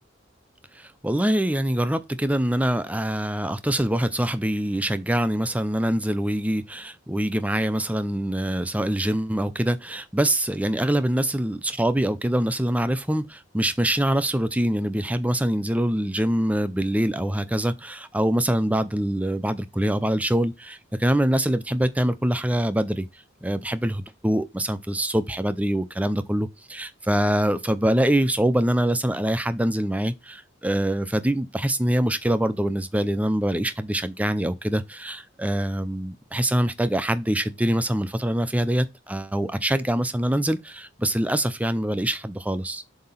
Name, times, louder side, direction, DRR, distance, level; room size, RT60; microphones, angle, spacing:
voice 1, 0.7-23.1 23.4-42.8, right 1 dB, 10° right, 0.5 m, -24 dB
7.6 x 2.9 x 5.6 m
head